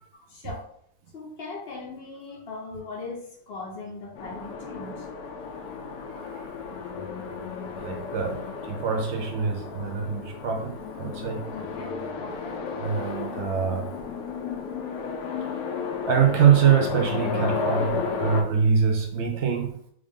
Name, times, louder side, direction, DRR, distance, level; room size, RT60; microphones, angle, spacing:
voice 1, 0.1-0.7 1.1-5.1 7.6-7.9 11.5-12.6 14.3-14.4, left 3 dB, 55° left, 0 dB, 0.8 m, -39 dB
sound 1, 4.2-18.4, left 5 dB, 90° left, 1.1 m, -33 dB
voice 2, 6.2-6.5 7.2-7.3 7.8-8.4 8.7-11.4 12.8-13.9 16.1-19.7, right 7 dB, 65° right, 3 dB, 0.8 m, -24 dB
3.3 x 2.5 x 3.5 m, 0.67 s
omnidirectional pair, 1.5 m